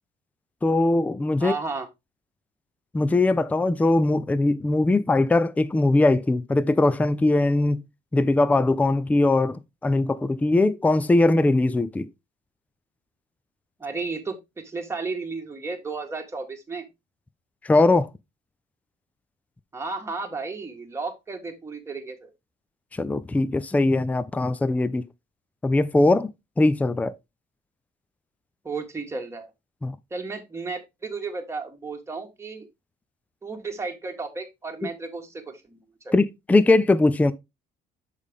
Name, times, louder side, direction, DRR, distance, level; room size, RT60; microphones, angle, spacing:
voice 1, 0.6-1.5 2.9-7.8 8.1-12.1 17.6-18.1 23.0-25.0 25.6-26.3 26.6-27.1 29.8-30.0 36.1-37.3, left 2 dB, 10° left, 0.4 m, -21 dB
voice 2, 1.4-1.9 13.8-16.9 19.7-22.3 28.6-29.5 30.1-32.7 33.4-35.4 35.7-35.8 36.0-36.1, right 4 dB, 15° right, 1.5 m, -33 dB
6.4 x 5.0 x 3.5 m
cardioid pair, 110°, 17 cm